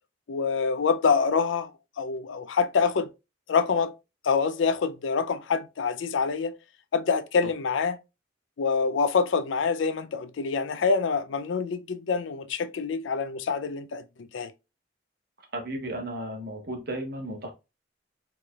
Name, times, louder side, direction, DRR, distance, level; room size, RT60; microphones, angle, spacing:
voice 1, 0.3-1.7 2.0-3.1 3.5-3.9 4.2-6.6 6.9-8.0 8.6-14.5, left 5 dB, 85° left, 0.4 m, -26 dB
voice 2, 15.5-17.5, right 1 dB, 55° right, 1.1 m, -34 dB
4.3 x 3.2 x 2.3 m
head